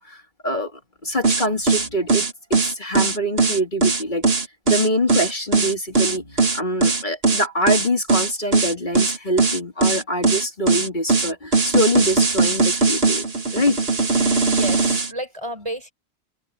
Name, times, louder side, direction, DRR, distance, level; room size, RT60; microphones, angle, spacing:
voice 1, 0.0-4.3 4.7-13.2 13.5-13.8, equal, 45° left, 3.0 m, -24 dB
sound 1, 1.2-15.1, right 3 dB, 60° right, 2.3 m, -19 dB
voice 2, 14.4-15.9, right 1 dB, 25° right, 4.6 m, -32 dB
omnidirectional pair, 1.1 m